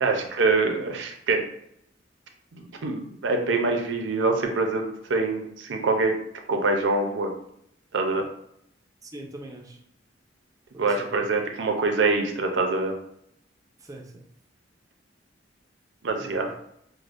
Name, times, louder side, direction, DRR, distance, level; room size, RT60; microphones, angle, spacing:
voice 1, 0.0-1.4 2.5-6.1 6.5-7.3 7.9-8.2 10.8-12.9 16.0-16.5, right 3 dB, 70° right, 4 dB, 0.5 m, -25 dB
voice 2, 9.0-9.8 10.7-11.3 13.8-14.2 16.2-16.5, right 1 dB, 20° right, 0 dB, 0.5 m, -41 dB
4.8 x 2.1 x 2.5 m, 0.73 s
head